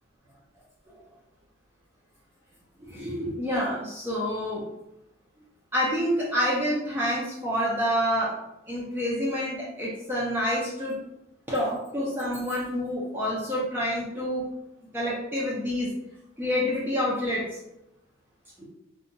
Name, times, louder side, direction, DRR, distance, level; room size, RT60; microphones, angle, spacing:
voice 1, 2.8-4.6 5.7-8.4 8.7-11.0 11.5-14.5 14.9-15.9 16.4-17.6 18.6-18.7, equal, 10° right, -7 dB, 0.4 m, -28 dB
2.7 x 2.2 x 2.6 m, 0.86 s
head